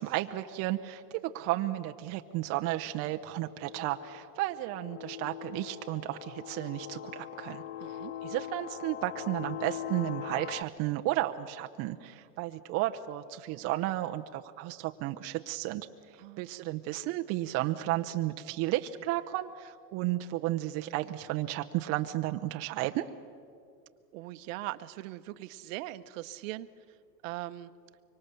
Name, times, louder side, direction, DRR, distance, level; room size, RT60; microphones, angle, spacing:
voice 1, 0.0-7.6 8.2-15.9 16.4-23.0, right 15 dB, 30° right, 5 dB, 0.6 m, -33 dB
sound 1, 2.3-2.4 3.2-10.6, left 11 dB, 50° left, 0.7 m, -42 dB
voice 2, 7.8-8.1 16.2-16.5 24.1-26.7 27.2-27.7, right 16 dB, 50° right, 12 dB, 0.9 m, -40 dB
24.5 x 24.0 x 6.8 m, 2.4 s
hypercardioid pair, 130°, 50 cm